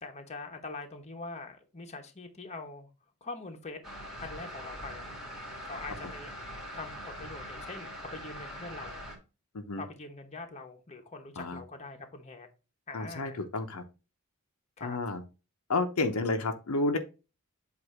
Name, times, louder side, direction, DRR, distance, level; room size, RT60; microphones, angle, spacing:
voice 1, 0.0-2.9 3.2-3.8 4.2-5.1 5.6-6.4 6.7-9.0 9.8-12.5 12.9-13.4 14.8-15.0, left 3 dB, 30° left, 1.0 m, -43 dB
sound 1, 3.8-9.2, equal, ahead, 1.7 m, -42 dB
voice 2, 12.9-13.8 14.8-15.2 15.7-17.0, left 3 dB, 70° left, 0.8 m, -30 dB
7.9 x 2.7 x 4.8 m
head